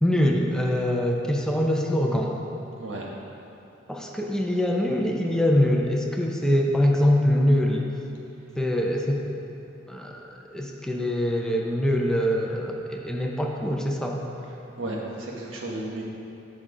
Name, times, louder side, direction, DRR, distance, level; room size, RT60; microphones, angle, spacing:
voice 1, 0.0-2.4 3.9-7.9 8.6-9.2 9.9-10.2 10.5-14.2, left 1 dB, 5° left, 0 dB, 0.6 m, -23 dB
voice 2, 2.8-3.1 14.8-16.0, right 2 dB, 85° right, -2 dB, 1.3 m, -33 dB
7.9 x 6.1 x 5.0 m, 2.8 s
head